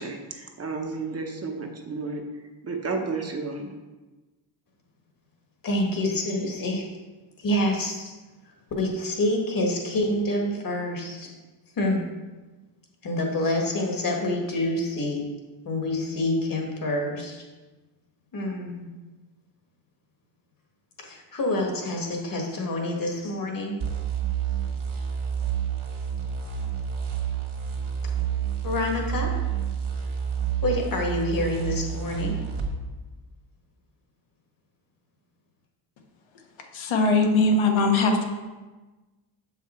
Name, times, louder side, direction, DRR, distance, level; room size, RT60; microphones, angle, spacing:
voice 1, 0.0-2.2 2.6-3.7, right 4 dB, 30° right, 3 dB, 0.9 m, -32 dB
voice 2, 5.6-6.8 7.4-8.2 8.8-11.3 11.8-12.0 13.0-15.3 15.6-17.4 18.3-18.9 21.0-23.7 28.6-29.4 30.6-32.4, left 1 dB, 45° left, 1 dB, 1.6 m, -27 dB
sound 1, 23.8-32.7, right 8 dB, 55° right, 1.6 m, -29 dB
voice 3, 36.7-38.2, left 3 dB, 80° left, 2 dB, 1.3 m, -20 dB
7.0 x 5.7 x 4.3 m, 1.2 s
cardioid pair, 130°, 47 cm